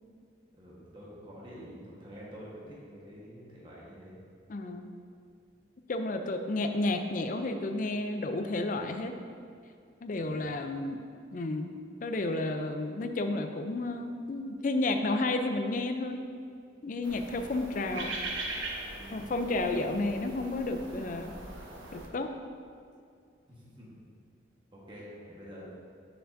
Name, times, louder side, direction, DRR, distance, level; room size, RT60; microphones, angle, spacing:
voice 1, 0.5-4.2 10.2-10.6 17.1-17.4 18.9-19.3 23.5-24.0 24.7-25.7, equal, 25° right, -6 dB, 1.3 m, -48 dB
voice 2, 4.5-4.9 5.9-9.1 10.0-11.0 11.3-11.7 12.0-16.2 16.8-18.1 19.1-21.3 21.9-22.3, left 2 dB, 45° left, 6 dB, 0.4 m, -31 dB
sound 1, 17.0-22.1, right 2 dB, 85° right, 0.9 m, -40 dB
7.8 x 6.5 x 2.6 m, 2.3 s
head